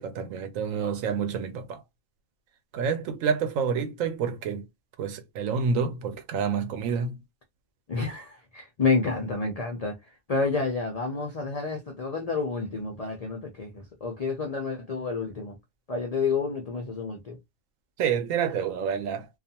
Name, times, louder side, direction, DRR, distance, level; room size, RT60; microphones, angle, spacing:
voice 1, 0.0-1.8 2.7-4.7 5.0-7.2 18.0-19.3, right 6 dB, 75° right, 1.0 m, -28 dB
voice 2, 7.9-9.9 10.3-15.5 15.9-17.4, left 4 dB, 65° left, 0.3 m, -29 dB
2.4 x 2.4 x 2.7 m
omnidirectional pair, 1.4 m